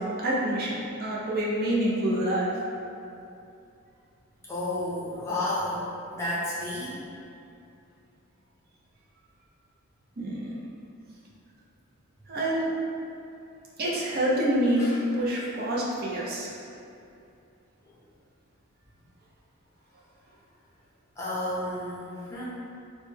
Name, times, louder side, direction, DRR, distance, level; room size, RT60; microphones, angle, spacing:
voice 1, 0.0-2.5 10.2-10.5 12.3-12.7 13.8-14.9 15.1-16.5, right 1 dB, 45° right, -5 dB, 0.5 m, -27 dB
voice 2, 4.5-7.0 14.8-15.0 17.9-18.0 21.2-22.4, left 1 dB, 15° left, -8 dB, 0.6 m, -32 dB
3.0 x 2.1 x 3.2 m, 2.6 s
head